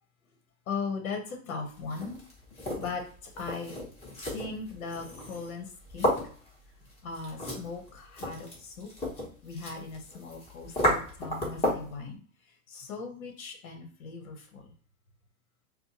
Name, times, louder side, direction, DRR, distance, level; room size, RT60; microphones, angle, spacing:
voice 1, 0.7-2.2 2.8-3.0 3.4-3.8 4.3-6.1 7.0-8.9 9.4-12.2 12.7-14.6, left 4 dB, 80° left, 4 dB, 1.1 m, -38 dB
sound 1, 1.8-12.0, equal, 15° left, 1.1 m, -34 dB
4.3 x 2.2 x 2.8 m, 0.43 s
supercardioid pair, 135°, 41 cm